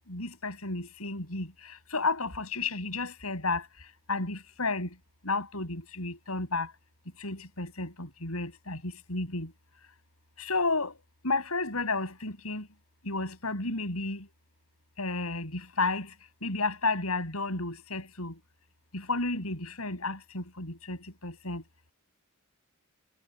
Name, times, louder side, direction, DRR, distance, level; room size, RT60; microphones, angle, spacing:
voice 1, 0.1-1.5 1.9-3.6 4.1-4.9 5.3-6.7 7.2-9.5 10.4-10.9 11.2-12.7 13.1-14.2 15.0-16.1 16.4-18.3 18.9-21.6, left 3 dB, 85° left, 7.4 m, -32 dB
head